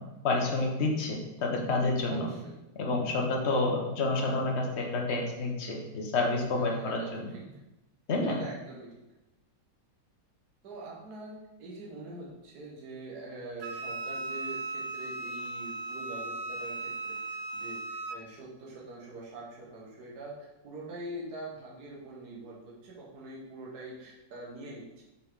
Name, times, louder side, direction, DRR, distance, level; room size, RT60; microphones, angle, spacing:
voice 1, 0.2-2.3 2.8-7.3 8.1-8.4, left 2 dB, 40° left, 0 dB, 1.2 m, -29 dB
voice 2, 2.1-2.5 6.5-7.4 8.2-8.9 10.6-25.0, right 2 dB, 55° right, -4 dB, 1.9 m, -44 dB
Wind instrument woodwind instrument, 13.6-18.2, right 2 dB, 85° right, 1.3 m, -37 dB
6.7 x 5.4 x 3.8 m, 0.97 s
omnidirectional pair, 2.0 m